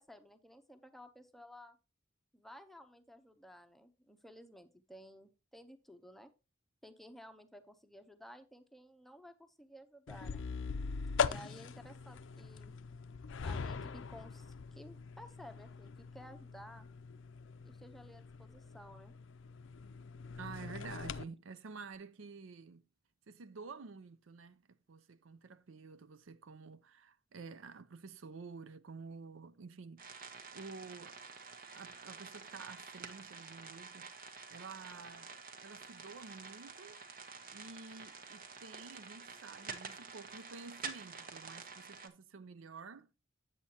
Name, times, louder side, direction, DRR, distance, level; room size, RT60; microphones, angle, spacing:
voice 1, 0.0-1.8 2.3-6.3 6.8-10.5 11.2-12.7 13.4-16.9 17.6-19.1, equal, ahead, 0.7 m, -55 dB
sound 1, 10.1-21.2, left 5 dB, 70° left, 0.5 m, -42 dB
voice 2, 20.4-22.8 23.3-30.1 30.5-31.3 31.7-34.1 34.5-35.3 35.6-37.0 37.5-43.1, right 4 dB, 75° right, 0.5 m, -50 dB
sound 2, 30.0-42.1, right 5 dB, 45° right, 1.1 m, -49 dB
8.5 x 8.2 x 2.9 m
head